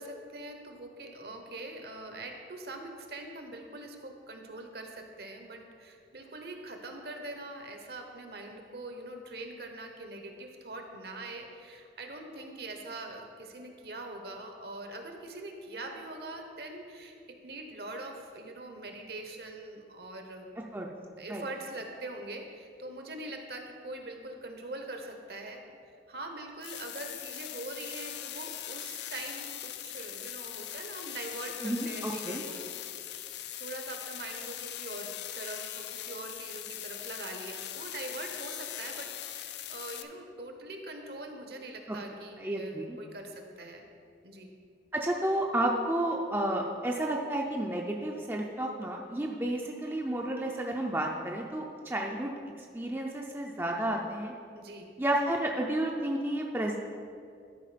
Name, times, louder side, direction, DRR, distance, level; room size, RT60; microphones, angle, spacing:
voice 1, 0.0-20.5 21.2-25.6 26.1-33.1 33.6-43.9 44.2-44.5 54.5-54.9, right 2 dB, 60° right, 4 dB, 1.0 m, -43 dB
sound 1, 26.6-40.0, left 11 dB, 70° left, 0.5 m, -41 dB
voice 2, 31.6-32.4 41.9-42.0 42.4-43.0 44.9-52.3 52.7-54.3 55.0-56.8, right 1 dB, 10° right, 0 dB, 0.5 m, -31 dB
12.0 x 4.8 x 5.0 m, 2.3 s
head